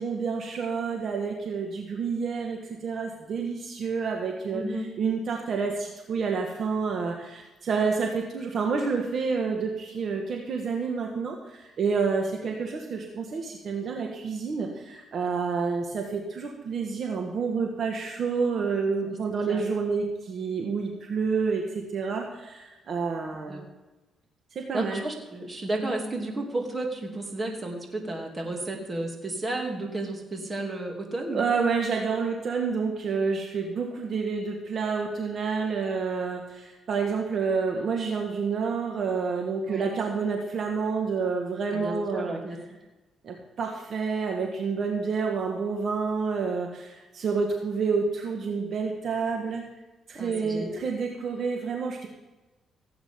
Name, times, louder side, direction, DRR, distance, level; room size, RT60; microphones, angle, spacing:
voice 1, 0.0-4.6 5.0-23.7 24.5-25.1 31.3-42.4 43.2-49.6 50.1-52.1, right 5 dB, 55° right, 1 dB, 1.6 m, -29 dB
voice 2, 4.5-4.9 19.0-19.2 19.5-19.6 23.5-23.6 24.7-31.4 39.7-39.9 41.7-42.6 50.1-50.8, right 2 dB, 25° right, 1 dB, 2.8 m, -32 dB
17.0 x 8.7 x 3.7 m, 1.1 s
cardioid pair, 90°, 0 cm